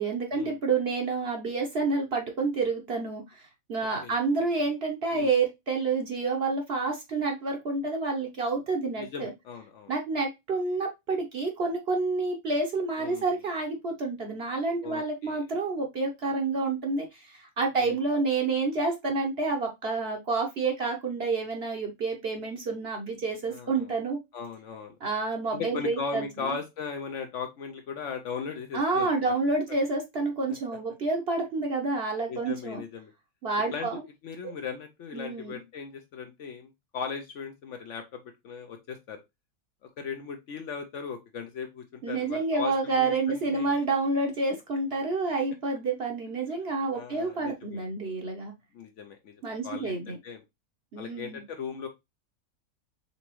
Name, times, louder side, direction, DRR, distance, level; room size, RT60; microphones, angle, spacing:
voice 1, 0.0-9.3 9.9-24.2 25.0-26.5 28.7-32.8 33.4-34.0 34.4-34.5 35.1-35.6 42.0-48.5 49.4-50.2 50.9-51.4, right 3 dB, 50° right, 1 dB, 1.0 m, -29 dB
voice 2, 9.0-9.9 13.0-13.3 14.8-15.4 17.8-18.0 23.5-23.9 24.3-25.0 25.5-29.3 29.7-29.8 32.3-33.1 33.7-33.9 34.2-39.2 39.8-43.8 46.9-47.8 48.7-50.4 51.0-51.9, left 5 dB, 65° left, 5 dB, 0.9 m, -38 dB
4.1 x 3.4 x 3.0 m, 0.21 s
omnidirectional pair, 1.5 m